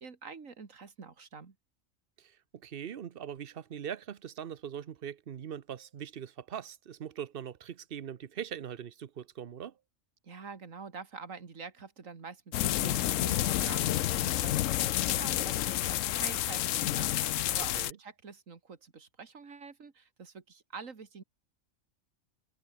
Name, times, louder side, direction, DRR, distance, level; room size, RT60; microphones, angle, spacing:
voice 1, 0.0-1.6 10.2-21.2, right 5 dB, 80° right, 2.5 m, -46 dB
voice 2, 2.2-9.7 17.7-18.0, right 9 dB, 50° right, 0.9 m, -41 dB
sound 1, 12.5-17.9, left 13 dB, 75° left, 1.0 m, -29 dB
omnidirectional pair, 1.4 m